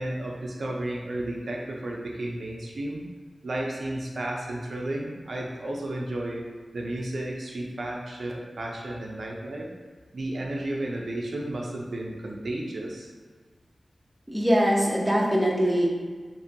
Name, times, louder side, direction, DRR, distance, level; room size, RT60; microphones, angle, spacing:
voice 1, 0.0-3.1 3.4-6.4 6.7-9.7 10.1-13.1, right 1 dB, 70° right, -1 dB, 0.3 m, -33 dB
voice 2, 14.3-15.9, equal, 10° right, -3 dB, 0.5 m, -22 dB
2.9 x 2.2 x 2.6 m, 1.5 s
wide cardioid pair, 95°, 0 cm